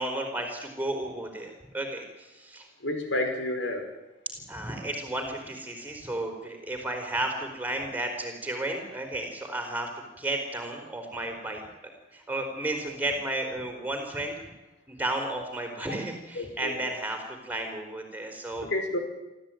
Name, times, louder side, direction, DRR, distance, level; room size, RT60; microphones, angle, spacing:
voice 1, 0.0-2.7 4.3-9.9 10.2-11.6 12.1-14.3 14.9-18.7, right 1 dB, 10° right, 3 dB, 4.3 m, -33 dB
voice 2, 2.8-3.9 16.4-16.8 18.6-19.0, left 1 dB, 80° left, 4 dB, 5.4 m, -30 dB
28.0 x 14.0 x 9.2 m, 1.0 s
head